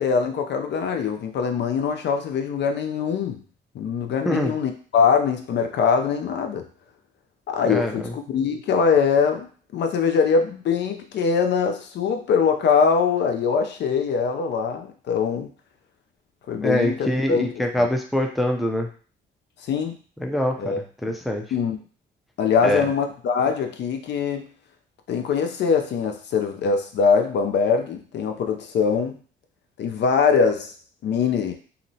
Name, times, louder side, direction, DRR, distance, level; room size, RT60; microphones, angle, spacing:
voice 1, 0.0-3.4 3.7-6.7 7.5-9.5 9.7-15.5 16.5-17.5 19.6-20.0 20.6-20.8 21.5-21.8 22.4-24.5 25.1-29.1 29.8-30.7 31.0-31.5, left 6 dB, 65° left, 5 dB, 0.4 m, -22 dB
voice 2, 7.7-8.1 16.5-18.9 20.2-21.4 22.6-22.9, left 1 dB, ahead, 2 dB, 0.4 m, -24 dB
2.8 x 2.1 x 2.6 m, 0.40 s
cardioid pair, 90°, 20 cm